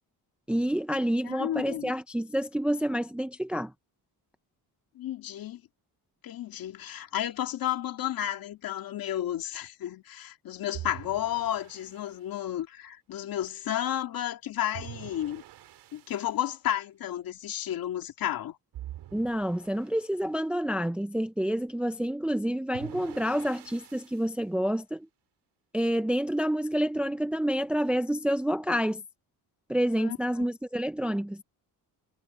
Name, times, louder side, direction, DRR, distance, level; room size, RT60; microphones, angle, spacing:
voice 1, 0.5-3.7 19.1-25.1 25.7-29.0 29.7-31.4, equal, 5° right, 0.5 m, -28 dB
voice 2, 1.2-1.9 4.9-5.6 6.2-15.4 15.9-18.6 30.0-30.2, left 12 dB, 60° left, 2.4 m, -32 dB
sound 1, 10.7-12.2 14.7-16.2 18.7-20.1 22.7-24.3, right 13 dB, 85° right, 4.7 m, -45 dB
cardioid pair, 165°, 39 cm